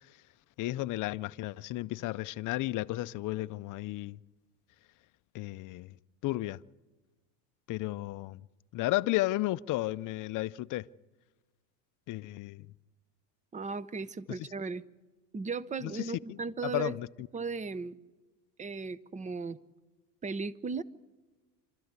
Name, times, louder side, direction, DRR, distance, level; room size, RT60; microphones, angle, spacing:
voice 1, 0.6-4.2 5.3-5.9 6.2-6.6 7.7-8.4 8.7-10.9 12.1-12.7 14.3-14.4 15.8-16.4 16.6-17.3, left 17 dB, 40° left, 0.5 m, -33 dB
voice 2, 13.5-14.8 15.3-16.9 17.3-18.0 18.6-19.6 20.2-20.8, right 4 dB, 15° right, 0.6 m, -36 dB
27.0 x 13.0 x 8.2 m
supercardioid pair, 100°, 48 cm